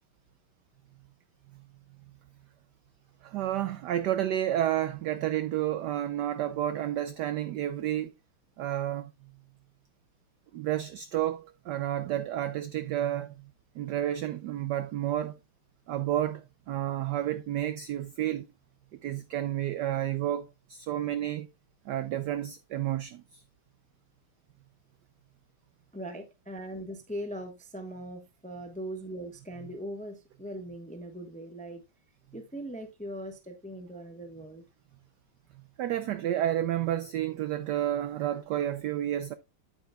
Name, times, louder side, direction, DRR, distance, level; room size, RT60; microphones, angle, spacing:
voice 1, 3.2-8.1 8.6-9.1 10.5-13.5 13.8-15.4 15.9-18.5 19.0-21.5 21.9-23.2 35.8-39.3, right 12 dB, 80° right, 0.9 m, -30 dB
voice 2, 25.9-31.8 32.3-34.6, right 1 dB, 5° left, 0.5 m, -40 dB
8.7 x 8.6 x 2.2 m
omnidirectional pair, 2.4 m